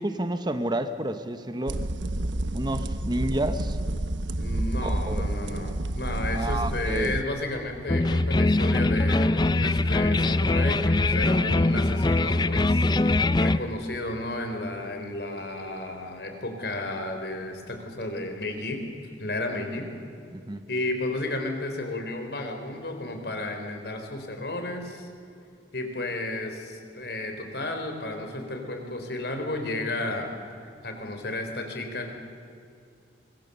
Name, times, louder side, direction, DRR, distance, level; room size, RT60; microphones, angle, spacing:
voice 1, 0.0-1.8 2.5-3.8 4.8-5.2 6.3-7.1 20.3-20.6, right 1 dB, 25° right, 9 dB, 0.9 m, -30 dB
sound 1, 1.7-7.2, right 1 dB, 85° right, 1.1 m, -29 dB
voice 2, 4.4-12.9 13.4-18.8 19.2-19.9 20.7-25.1 25.7-30.3 30.8-32.1, left 2 dB, 60° left, 4 dB, 3.9 m, -32 dB
sound 2, 7.9-13.6, left 2 dB, 25° left, 0.5 m, -22 dB
24.5 x 23.0 x 6.8 m, 2.5 s
head